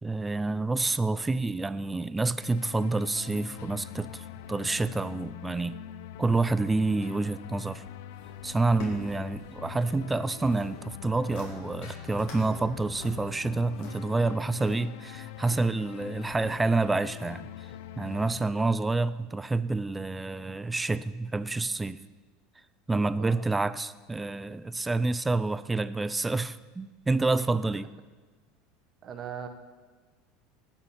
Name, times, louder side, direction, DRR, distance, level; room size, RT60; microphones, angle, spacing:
voice 1, 0.0-5.8 6.2-7.8 8.4-17.5 18.0-22.0 22.9-27.9, right 3 dB, 10° right, 15 dB, 0.4 m, -28 dB
sound 1, 2.4-18.5, left 11 dB, 80° left, 0.6 m, -43 dB
sound 2, 8.1-10.0 10.2-10.7 11.1-11.5 11.8-12.4 12.7-14.7 15.3-15.9 16.3-16.4, left 3 dB, 60° left, 4.7 m, -45 dB
voice 2, 29.0-29.5, right 8 dB, 30° right, 7 dB, 1.3 m, -38 dB
18.5 x 7.1 x 7.1 m, 1.4 s
supercardioid pair, 150°, 0 cm